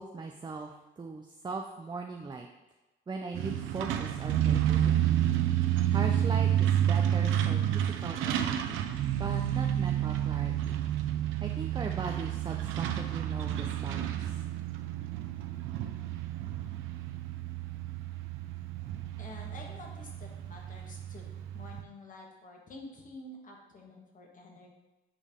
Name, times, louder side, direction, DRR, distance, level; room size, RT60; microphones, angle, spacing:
voice 1, 0.0-2.5 3.1-5.1 5.9-8.8 9.2-10.8 11.4-14.4, right 4 dB, 20° right, 3 dB, 0.5 m, -39 dB
Truck, 3.3-21.8, right 11 dB, 90° right, 0.5 m, -30 dB
voice 2, 19.2-24.7, left 2 dB, 40° left, 0 dB, 1.5 m, -49 dB
8.4 x 3.4 x 3.6 m, 1.1 s
cardioid pair, 90°, 20 cm